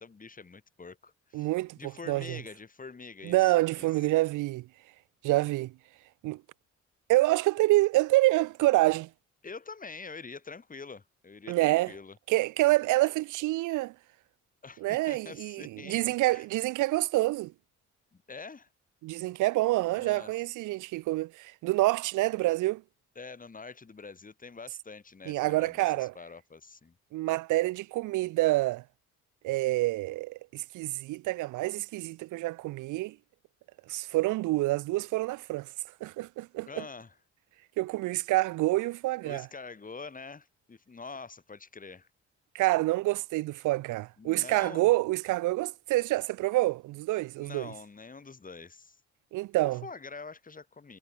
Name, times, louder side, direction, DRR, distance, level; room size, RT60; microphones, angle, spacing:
voice 1, 0.0-1.5 1.8-3.9 9.4-12.2 14.6-16.4 18.1-18.7 19.9-20.3 23.1-26.9 36.7-37.1 39.2-42.1 44.2-44.9 47.4-49.0 49.8-51.0, left 4 dB, 25° left, 2.9 m, -45 dB
voice 2, 1.3-2.4 3.2-4.7 5.2-5.7 6.2-6.4 7.1-9.1 11.5-11.9 12.3-13.9 14.8-17.5 19.0-22.8 25.3-26.1 27.1-28.8 29.4-33.2 33.9-35.7 36.0-36.8 37.8-39.5 42.5-47.7 49.3-49.8, right 19 dB, 85° right, 0.6 m, -27 dB
cardioid pair, 90°, 30 cm